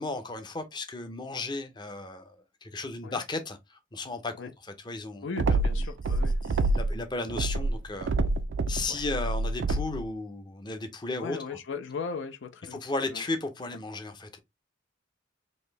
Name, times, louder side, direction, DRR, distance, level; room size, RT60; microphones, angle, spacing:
voice 1, 0.0-2.4 2.6-5.2 5.7-5.9 6.4-8.1 8.7-11.6 12.7-14.4, left 2 dB, 25° left, 0.6 m, -35 dB
voice 2, 5.2-6.4 8.9-9.0 11.2-13.2, left 5 dB, 70° left, 0.5 m, -38 dB
sound 1, 5.4-7.0 7.3-10.1, right 2 dB, 70° right, 0.4 m, -27 dB
4.2 x 2.7 x 3.2 m
head